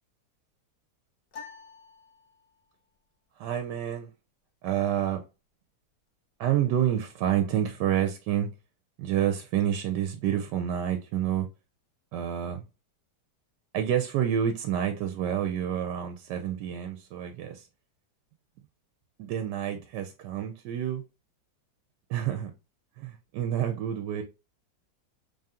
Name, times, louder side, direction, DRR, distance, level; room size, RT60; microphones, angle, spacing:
sound 1, 1.3-2.8, left 5 dB, 60° left, 1.0 m, -47 dB
voice 1, 3.4-4.1 4.6-5.2 6.4-8.5 9.0-11.5 12.1-12.6 13.7-17.7 19.2-21.0 22.1-22.5 23.0-24.2, right 10 dB, 80° right, 1.2 m, -28 dB
3.5 x 2.8 x 3.6 m
omnidirectional pair, 1.8 m